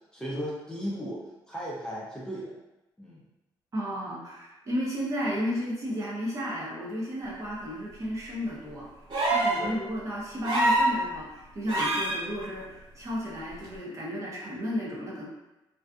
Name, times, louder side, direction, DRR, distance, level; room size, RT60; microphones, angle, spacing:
voice 1, 0.1-2.5 3.0-3.2 9.6-9.9, equal, 10° left, -7 dB, 0.6 m, -36 dB
voice 2, 3.7-8.9 9.3-15.2, equal, 35° right, -4 dB, 0.7 m, -33 dB
sound 1, 9.1-9.6 10.4-10.9 11.7-12.2 13.6-13.7, right 1 dB, 60° right, 0.9 m, -24 dB
2.5 x 2.3 x 2.3 m, 0.99 s
cardioid pair, 125°, 9 cm